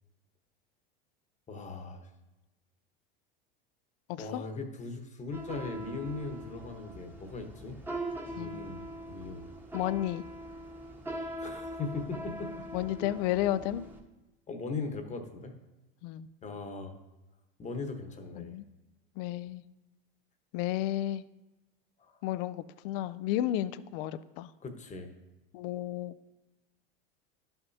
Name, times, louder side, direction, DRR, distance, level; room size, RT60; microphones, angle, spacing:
voice 1, 1.5-2.0 4.2-7.8 8.2-9.5 11.4-12.5 14.5-15.5 16.4-17.0 17.6-18.6 22.0-22.2 24.6-25.1, left 3 dB, 25° left, 6 dB, 1.1 m, -39 dB
voice 2, 4.1-4.4 8.3-8.6 9.7-10.2 12.7-13.9 16.0-16.3 18.4-18.6 19.2-19.6 20.5-21.2 22.2-24.5 25.5-26.2, left 13 dB, 65° left, 15 dB, 0.4 m, -32 dB
sound 1, 5.3-14.0, right 1 dB, 5° right, 1.0 m, -42 dB
11.5 x 5.7 x 2.7 m, 1.0 s
supercardioid pair, 105°, 29 cm